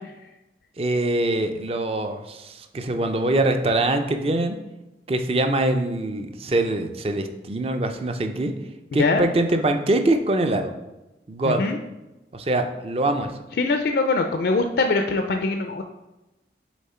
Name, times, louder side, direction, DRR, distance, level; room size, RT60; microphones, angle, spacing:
voice 1, 0.8-4.6 5.1-8.5 8.9-10.7 11.3-11.7 12.3-13.3, right 2 dB, 35° right, 6 dB, 0.5 m, -23 dB
voice 2, 11.5-11.8 13.6-15.8, left 3 dB, 65° left, 5 dB, 0.4 m, -22 dB
7.2 x 3.6 x 4.3 m, 1.0 s
head